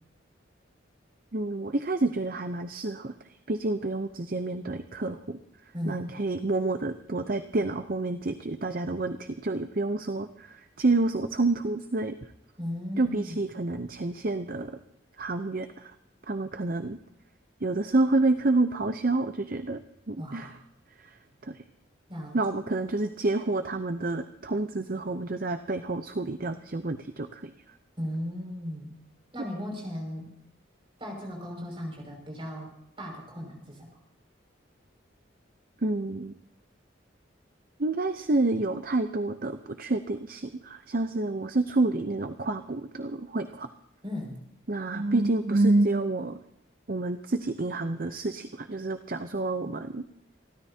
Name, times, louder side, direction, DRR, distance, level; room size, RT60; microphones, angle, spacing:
voice 1, 1.3-5.4 5.9-12.2 13.0-14.8 15.2-15.9 16.3-17.0 17.6-19.8 20.1-20.6 21.0-21.2 21.4-21.6 22.3-27.8 35.8-36.3 37.8-43.7 44.7-46.4 46.9-50.0, right 2 dB, 45° right, 9 dB, 0.7 m, -28 dB
voice 2, 5.7-6.1 12.6-13.4 20.2-20.5 22.1-22.4 28.0-29.0 29.3-30.3 31.0-32.7 33.0-33.9 44.0-44.4, equal, 25° right, 0 dB, 6.0 m, -36 dB
28.5 x 13.5 x 2.8 m, 0.77 s
head